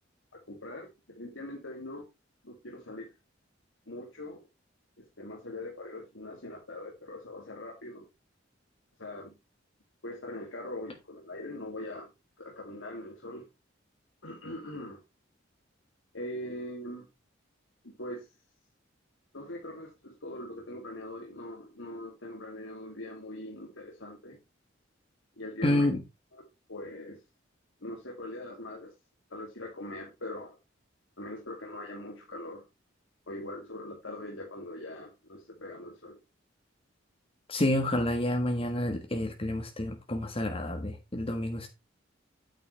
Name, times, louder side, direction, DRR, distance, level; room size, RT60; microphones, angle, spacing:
voice 1, 0.5-2.0 2.4-3.1 3.9-4.4 5.0-8.0 9.0-9.3 10.0-12.1 12.4-13.4 14.2-15.0 16.1-17.1 18.0-18.3 19.3-24.4 25.4-25.9 26.7-27.2 27.8-28.9 29.3-30.6 31.2-32.7 33.3-36.2, left 1 dB, 80° left, 2.7 m, -41 dB
voice 2, 25.6-26.0 37.5-41.7, left 1 dB, 30° left, 1.4 m, -29 dB
9.5 x 9.1 x 3.3 m
head